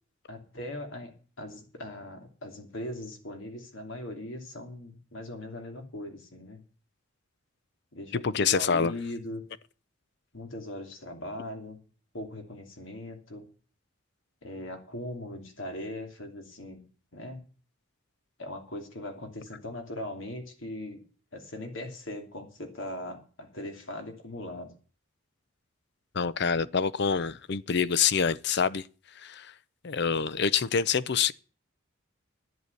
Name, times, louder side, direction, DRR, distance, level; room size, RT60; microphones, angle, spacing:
voice 1, 0.3-1.1 1.4-6.6 7.9-9.4 10.3-11.8 12.1-13.5 14.4-16.8 17.1-17.4 18.4-21.0 21.3-24.7, left 1 dB, 70° left, 2.8 m, -39 dB
voice 2, 8.1-8.9 26.1-28.9 29.2-29.5 29.8-31.3, left 6 dB, 55° left, 0.6 m, -26 dB
11.0 x 7.8 x 8.2 m
head